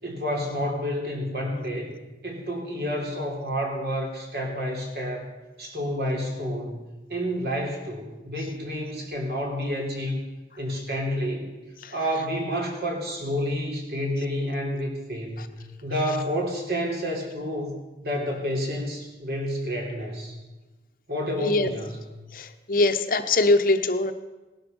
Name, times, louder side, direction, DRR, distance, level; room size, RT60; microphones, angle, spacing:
voice 1, 0.0-1.9 2.2-5.3 5.6-6.8 7.1-10.2 10.6-11.5 11.9-15.4 15.8-17.8 18.0-20.4 21.1-22.0, equal, 60° right, 0 dB, 3.5 m, -29 dB
voice 2, 21.4-21.7 22.3-24.1, left 2 dB, 50° left, 8 dB, 0.9 m, -22 dB
18.0 x 12.0 x 5.4 m, 1.2 s
head